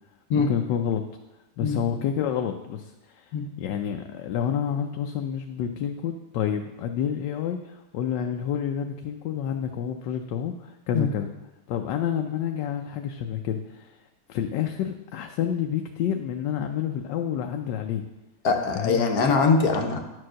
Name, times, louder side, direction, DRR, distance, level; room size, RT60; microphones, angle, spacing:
voice 1, 0.3-1.0 1.6-11.3 11.7-14.0 14.3-18.0 18.7-19.0, left 9 dB, 80° left, 5 dB, 1.3 m, -29 dB
voice 2, 18.4-20.0, left 4 dB, 60° left, 4 dB, 1.3 m, -22 dB
10.0 x 4.7 x 6.2 m, 1.0 s
omnidirectional pair, 1.9 m